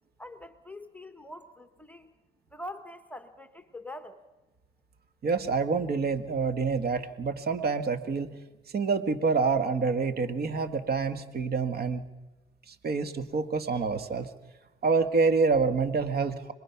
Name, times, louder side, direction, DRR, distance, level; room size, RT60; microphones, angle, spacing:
voice 1, 0.2-2.1 2.5-4.2, left 1 dB, 5° left, 8 dB, 1.3 m, -44 dB
voice 2, 5.2-8.4 8.7-12.0 12.7-14.3 14.8-16.5, right 4 dB, 50° right, 9 dB, 1.7 m, -27 dB
26.0 x 21.0 x 5.9 m, 1.1 s
cardioid pair, 90°, 20 cm